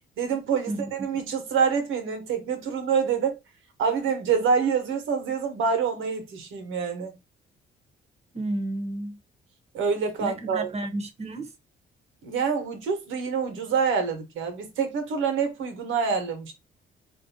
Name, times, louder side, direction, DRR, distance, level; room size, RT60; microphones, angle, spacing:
voice 1, 0.2-3.4 3.8-7.1 9.7-10.7 12.2-16.5, right 6 dB, 80° right, 1.3 m, -26 dB
voice 2, 8.3-9.2 10.2-11.5, right 1 dB, 35° right, 1.0 m, -31 dB
4.5 x 2.7 x 2.8 m
cardioid pair, 90°, 20 cm